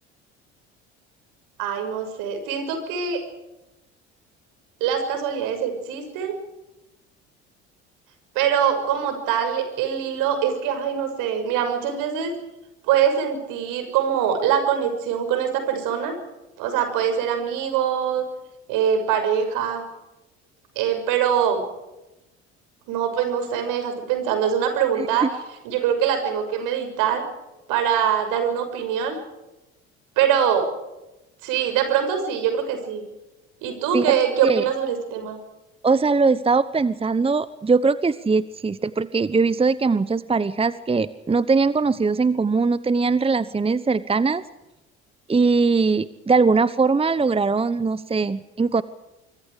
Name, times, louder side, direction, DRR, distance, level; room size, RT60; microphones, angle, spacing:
voice 1, 1.6-3.2 4.8-6.3 8.3-12.3 12.9-16.2 16.6-18.2 18.7-19.8 20.7-21.6 22.9-25.3 25.6-27.3 27.7-29.2 30.2-30.7 31.4-33.0 33.6-35.4, right 8 dB, 70° right, 7 dB, 6.4 m, -23 dB
voice 2, 25.0-25.3 33.9-34.1 34.4-34.7 35.8-44.4 45.3-48.8, right 4 dB, 15° right, 16 dB, 1.0 m, -21 dB
26.0 x 24.5 x 5.0 m, 0.96 s
hypercardioid pair, 60°, 34 cm